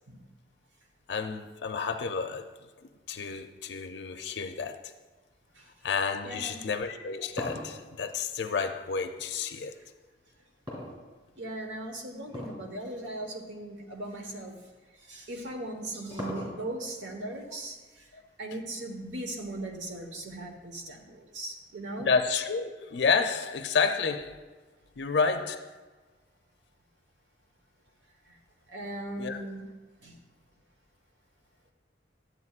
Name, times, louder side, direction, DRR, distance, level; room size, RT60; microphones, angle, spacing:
voice 1, 1.1-2.5 3.1-4.9 5.8-9.7 22.1-24.4 25.0-25.7 29.2-29.4, left 5 dB, 70° left, 0.5 m, -30 dB
voice 2, 6.2-6.6 10.7-10.9 11.4-14.7 15.0-22.1 28.3-28.4 28.7-29.7 30.0-30.2, right 1 dB, 85° right, 1.2 m, -39 dB
sound 1, 6.9-9.3 10.7-11.5 12.3-12.7 13.0-13.1 13.9-14.0 15.4-16.9, left 1 dB, 25° right, 2.4 m, -39 dB
11.0 x 7.9 x 2.4 m
head